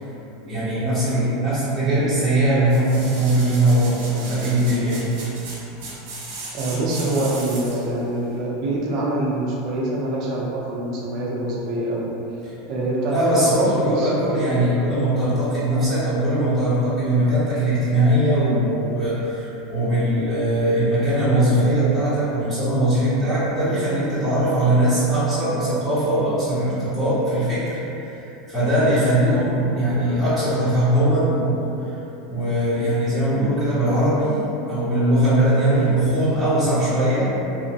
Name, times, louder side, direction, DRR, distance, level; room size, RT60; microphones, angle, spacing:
voice 1, 0.4-5.0 7.1-7.2 13.1-27.8 28.1-28.2 28.5-31.7 32.3-37.3, right 1 dB, 5° right, -15 dB, 0.8 m, -20 dB
sound 1, 2.7-7.9 8.4-8.5, right 2 dB, 75° right, 0.9 m, -36 dB
voice 2, 6.5-12.1 12.7-14.1, right 1 dB, 45° right, -4 dB, 0.6 m, -25 dB
3.0 x 2.1 x 2.8 m, 2.9 s
supercardioid pair, 140°, 0 cm